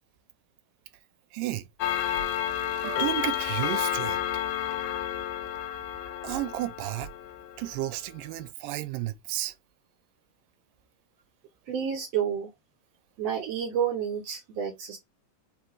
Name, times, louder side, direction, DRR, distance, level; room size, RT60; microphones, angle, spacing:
voice 1, 1.3-1.7 2.8-4.2 6.2-7.1 7.6-9.5, right 15 dB, 85° right, 2.2 m, -32 dB
Clock, 1.8-7.8, left 11 dB, 85° left, 2.3 m, -31 dB
voice 2, 11.7-12.5 13.2-15.0, right 8 dB, 65° right, 1.7 m, -30 dB
4.9 x 3.2 x 3.0 m
omnidirectional pair, 3.9 m